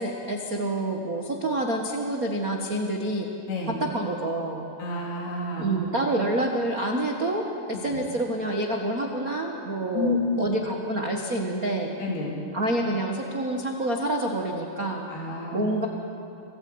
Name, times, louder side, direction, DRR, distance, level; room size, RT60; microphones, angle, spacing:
voice 1, 0.0-3.3 3.8-4.7 5.6-7.4 7.7-11.9 12.5-15.0 15.5-15.9, right 1 dB, 85° right, 1 dB, 0.7 m, -27 dB
voice 2, 4.8-5.7 9.9-10.5 12.0-12.4 15.1-15.6, left 3 dB, 85° left, -2 dB, 5.3 m, -29 dB
26.5 x 17.5 x 8.7 m, 2.8 s
omnidirectional pair, 4.4 m